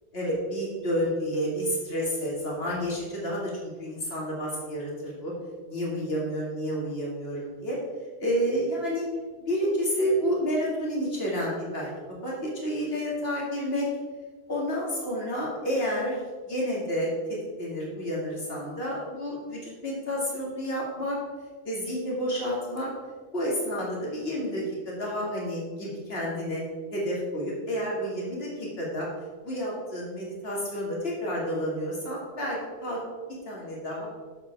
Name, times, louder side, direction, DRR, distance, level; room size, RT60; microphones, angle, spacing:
voice 1, 0.1-3.5 3.8-5.3 5.7-7.8 8.2-9.1 9.5-11.9 12.2-13.9 14.5-16.2 16.5-17.1 17.6-21.2 21.6-22.9 23.3-26.6 26.9-29.1 29.4-33.0 33.5-34.1, equal, 60° left, -4 dB, 2.7 m, -30 dB
7.7 x 7.5 x 4.7 m, 1.4 s
omnidirectional pair, 1.1 m